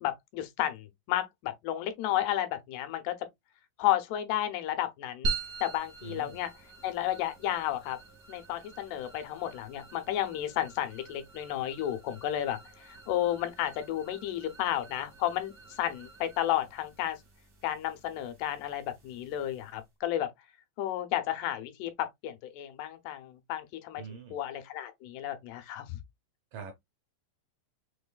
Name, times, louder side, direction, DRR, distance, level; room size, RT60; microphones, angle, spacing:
voice 1, 0.0-3.2 3.8-5.4 5.6-6.5 6.8-8.0 8.3-17.2 17.6-20.3 20.8-24.0 24.3-26.0, left 12 dB, 80° left, 2.7 m, -32 dB
sound 1, 5.2-19.9, right 4 dB, 50° right, 1.0 m, -43 dB
voice 2, 6.0-6.4 24.0-24.4 26.5-26.8, right 6 dB, 70° right, 2.0 m, -44 dB
6.2 x 3.1 x 2.2 m
omnidirectional pair, 4.7 m